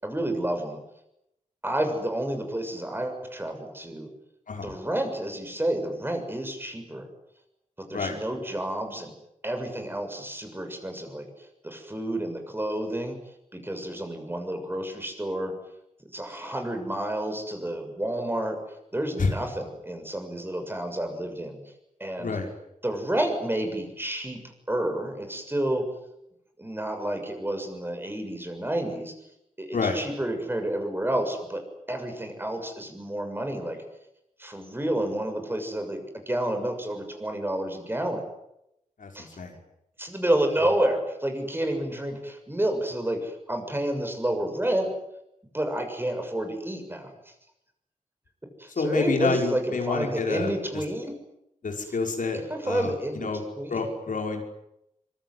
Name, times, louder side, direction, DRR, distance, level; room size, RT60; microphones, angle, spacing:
voice 1, 0.0-0.8 1.6-4.1 4.6-7.1 7.8-9.1 9.4-13.2 13.5-15.6 16.1-18.6 18.9-21.6 22.0-22.3 22.8-24.4 24.7-25.9 26.6-29.1 29.6-33.8 34.4-38.2 39.1-39.4 40.0-44.9 45.5-47.3 48.6-51.1 52.3-53.3 53.6-53.8, right 1 dB, 15° right, 5 dB, 6.8 m, -30 dB
voice 2, 39.0-39.6 48.8-50.8 51.6-53.4 53.7-54.4, left 4 dB, 80° left, 3 dB, 5.6 m, -28 dB
25.0 x 23.5 x 9.7 m, 0.83 s
wide cardioid pair, 115°, 14 cm